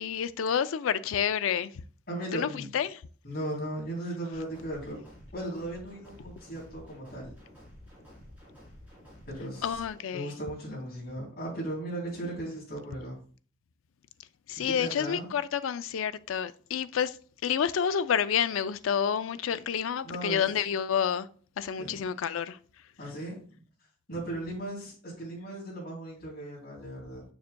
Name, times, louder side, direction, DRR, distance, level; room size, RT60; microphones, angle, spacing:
voice 1, 0.0-1.7 2.3-3.0 9.6-10.3 14.5-17.2 17.4-21.3 21.6-22.6, left 8 dB, 80° left, 0.4 m, -29 dB
voice 2, 2.1-2.7 3.2-5.0 5.3-7.4 9.3-9.8 10.1-13.2 14.6-15.3 20.0-20.7 21.8-22.1 23.0-23.6 24.1-27.2, right 1 dB, 45° left, 3.1 m, -37 dB
sound 1, 4.3-10.0, equal, 10° right, 3.3 m, -51 dB
6.9 x 6.2 x 2.2 m
head